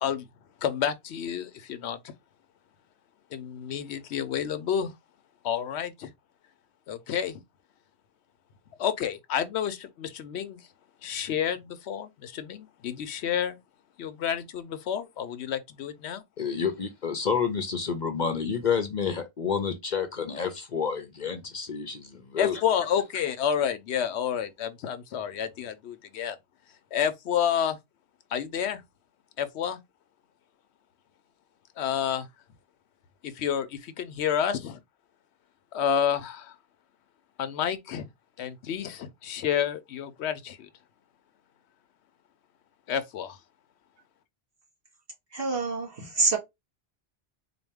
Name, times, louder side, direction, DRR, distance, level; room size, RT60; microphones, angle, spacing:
voice 1, 0.6-2.0 3.3-4.9 5.4-6.1 6.9-7.4 8.8-10.6 11.0-13.6 14.0-16.2 22.4-26.4 26.9-27.8 28.3-28.8 29.4-29.8 31.8-32.3 33.2-34.8 35.7-36.5 37.4-38.1 38.4-40.7 42.9-43.4, left 8 dB, 90° left, 0.9 m, -29 dB
voice 2, 16.4-22.6, left 6 dB, 50° left, 0.7 m, -29 dB
voice 3, 45.3-46.4, right 3 dB, 60° right, 2.0 m, -26 dB
4.2 x 2.2 x 3.4 m
omnidirectional pair, 1.1 m